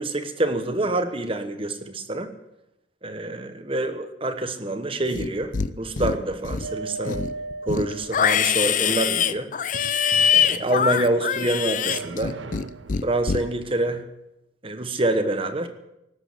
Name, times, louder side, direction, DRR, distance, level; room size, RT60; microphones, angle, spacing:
voice 1, 0.0-2.3 3.0-7.2 7.6-9.5 10.3-12.4 13.0-14.0 14.6-15.7, right 2 dB, 30° right, 8 dB, 1.2 m, -26 dB
Livestock farm animals working animals, 5.1-5.7 6.0-6.7 7.0-12.6 12.9-13.4, left 7 dB, 45° left, 0.5 m, -23 dB
sound 1, 6.6-8.6 9.7-11.0 11.9-13.3, right 3 dB, 85° right, 0.7 m, -37 dB
18.0 x 7.9 x 7.8 m, 0.88 s
head